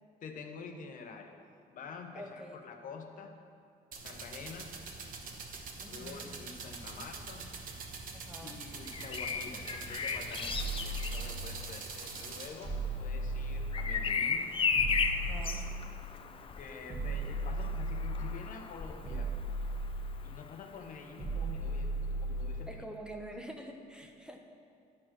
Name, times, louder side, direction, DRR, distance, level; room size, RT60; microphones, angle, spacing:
voice 1, 0.2-1.4 1.7-3.4 4.0-4.7 5.8-7.5 8.4-14.5 16.6-19.4 20.2-22.8, left 4 dB, 50° left, 4 dB, 0.8 m, -47 dB
voice 2, 2.1-2.6 5.8-6.3 8.1-8.6 15.3-15.7 22.7-24.4, equal, 5° right, 2 dB, 0.8 m, -46 dB
sound 1, 3.9-12.5, right 4 dB, 55° right, 1.1 m, -44 dB
Bird vocalization bird call bird song, 8.8-20.7 22.4-22.6, left 6 dB, 30° left, 0.5 m, -36 dB
sound 2, 10.5-11.8 12.6-14.2 14.7-16.2 16.9-18.5 19.0-20.4 21.2-22.8, right 2 dB, 35° right, 2.0 m, -36 dB
10.5 x 4.5 x 6.0 m, 2.3 s
cardioid pair, 110°, 17 cm